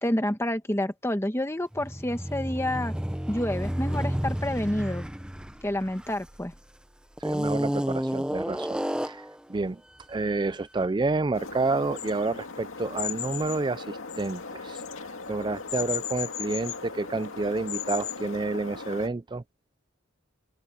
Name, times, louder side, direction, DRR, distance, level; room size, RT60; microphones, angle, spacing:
voice 1, 0.0-2.9 3.3-5.0 5.6-6.5, left 1 dB, 10° left, 1.4 m, -28 dB
sound 1, 1.7-6.6 7.2-9.4, equal, 5° right, 0.8 m, -31 dB
voice 2, 7.2-9.2 9.5-9.8 10.1-14.8 15.3-19.4, right 3 dB, 20° right, 0.4 m, -29 dB
sound 2, 11.3-19.1, left 6 dB, 75° left, 2.3 m, -36 dB
open air
head